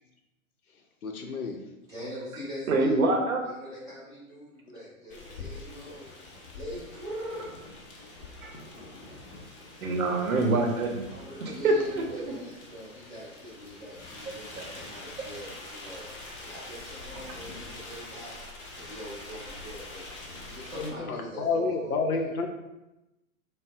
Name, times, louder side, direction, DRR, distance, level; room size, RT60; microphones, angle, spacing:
voice 1, 1.0-1.6 8.4-8.5 20.8-22.5, left 4 dB, 85° left, 3 dB, 0.6 m, -30 dB
voice 2, 1.9-2.9 3.4-6.1 6.5-7.5 11.0-16.0 16.4-18.3 18.7-20.1 20.4-22.3, equal, 10° right, -10 dB, 1.1 m, -42 dB
voice 3, 2.7-3.4 8.4-8.5 9.8-11.1 11.6-12.0, right 2 dB, 75° right, 2 dB, 0.7 m, -25 dB
sound 1, 5.1-20.9, left 2 dB, 40° left, 0.7 m, -45 dB
3.8 x 2.0 x 2.4 m, 0.96 s
figure-of-eight pair, 110°, 43 cm